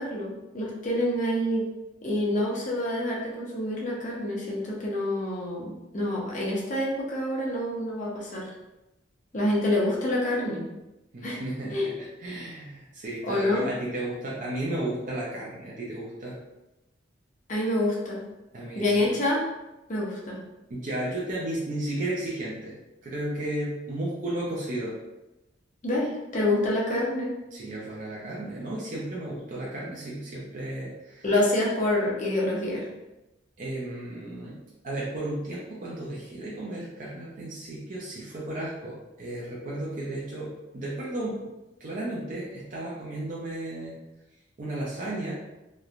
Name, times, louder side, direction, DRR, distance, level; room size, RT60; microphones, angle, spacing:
voice 1, 0.0-1.7 2.0-8.5 9.3-10.7 11.2-11.4 11.7-11.9 13.2-13.6 17.5-18.2 18.7-19.4 19.9-20.4 25.8-27.3 31.2-32.9, left 1 dB, 40° left, -4 dB, 0.6 m, -27 dB
voice 2, 11.1-16.4 18.5-19.1 20.7-22.7 23.0-24.9 27.5-31.2 33.6-34.6 34.8-41.5 41.8-44.0 44.6-45.3, right 1 dB, 40° right, -6 dB, 0.5 m, -34 dB
3.0 x 2.1 x 2.4 m, 0.98 s
head